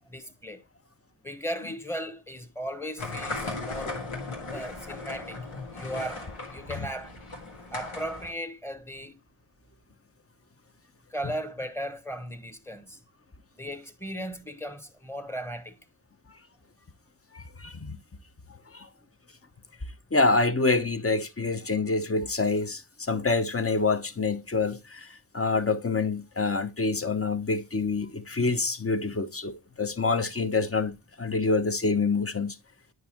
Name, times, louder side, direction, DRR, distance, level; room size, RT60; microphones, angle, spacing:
voice 1, 0.1-0.6 1.2-4.0 4.5-5.4 5.7-7.1 7.7-9.1 11.1-13.0 13.6-15.8, equal, 5° left, 1.1 m, -36 dB
sound 1, 3.0-8.3, left 3 dB, 85° left, 2.0 m, -37 dB
voice 2, 17.3-18.0 18.7-18.9 20.1-32.6, left 3 dB, 30° left, 1.0 m, -27 dB
9.4 x 5.3 x 3.0 m
cardioid pair, 45°, 49 cm